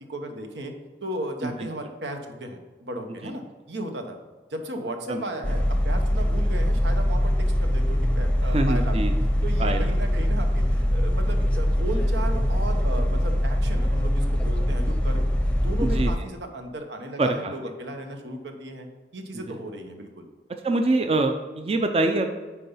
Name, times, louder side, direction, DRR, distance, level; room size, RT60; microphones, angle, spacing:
voice 1, 0.1-0.7 1.0-4.2 4.5-9.1 9.4-15.3 15.5-18.9 19.1-20.2, right 1 dB, 85° right, 5 dB, 1.1 m, -35 dB
sound 1, 5.4-16.2, equal, 5° left, 0.7 m, -23 dB
voice 2, 8.5-9.1 9.6-9.9 15.8-16.1 17.2-17.5 19.3-19.6 20.6-22.3, right 2 dB, 35° right, 5 dB, 0.5 m, -24 dB
9.4 x 4.6 x 5.6 m, 1.3 s
head